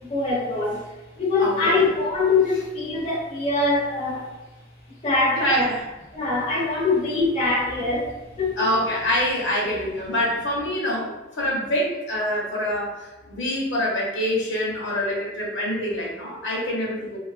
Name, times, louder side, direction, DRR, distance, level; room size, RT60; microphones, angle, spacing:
voice 1, 0.1-0.8 1.2-4.3 5.0-5.7 6.1-8.1 8.4-8.6, left 3 dB, 35° left, -7 dB, 0.5 m, -23 dB
voice 2, 1.4-1.8 5.4-5.8 8.6-17.2, equal, 70° left, -3 dB, 0.8 m, -25 dB
2.6 x 2.3 x 2.3 m, 1.1 s
head